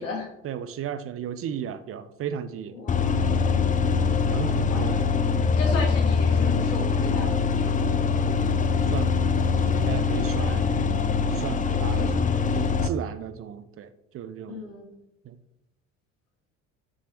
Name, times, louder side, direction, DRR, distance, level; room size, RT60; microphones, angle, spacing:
voice 1, 0.4-2.7 4.3-5.0 8.9-9.1 9.7-10.9 11.3-13.9 14.1-14.6 15.3-15.4, right 9 dB, 35° right, 12 dB, 0.8 m, -34 dB
voice 2, 2.7-3.2 4.7-5.1 5.6-7.9 14.5-14.9, left 3 dB, 75° left, 1 dB, 2.0 m, -35 dB
sound 1, 2.9-12.9, left 5 dB, 20° left, 0.6 m, -23 dB
13.5 x 7.0 x 3.0 m, 0.84 s
figure-of-eight pair, 60°, 39 cm